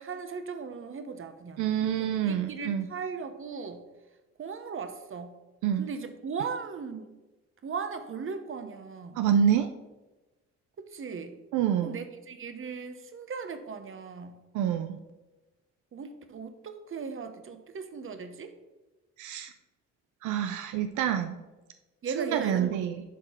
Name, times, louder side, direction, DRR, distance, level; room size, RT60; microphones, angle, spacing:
voice 1, 0.0-1.7 2.0-3.8 4.4-5.3 5.8-7.2 7.6-9.2 10.8-11.4 11.8-14.4 15.9-18.5 22.0-22.8, right 5 dB, 45° right, 9 dB, 1.0 m, -38 dB
voice 2, 1.6-2.9 5.6-5.9 9.2-9.7 11.5-12.0 14.5-15.0 19.2-19.5 20.2-21.4 22.2-23.0, right 9 dB, 85° right, 8 dB, 0.5 m, -27 dB
11.0 x 3.8 x 4.5 m, 1.1 s
cardioid pair, 65°, 29 cm